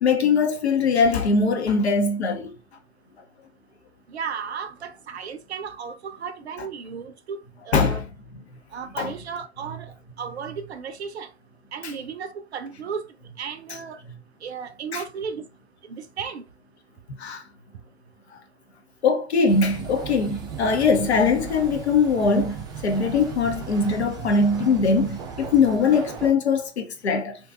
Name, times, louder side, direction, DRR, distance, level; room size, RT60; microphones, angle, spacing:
voice 1, 0.0-2.5 7.7-8.0 9.0-9.1 14.9-15.0 17.2-17.4 19.0-27.4, left 4 dB, 75° left, 0.6 m, -21 dB
voice 2, 4.1-7.4 7.7-8.0 8.7-11.3 11.7-13.0 13.4-14.0 14.4-15.4 15.9-16.4, right 6 dB, 75° right, 0.5 m, -34 dB
sound 1, 19.5-26.3, right 7 dB, 15° right, 0.4 m, -36 dB
2.6 x 2.2 x 2.3 m
figure-of-eight pair, 90°, 33 cm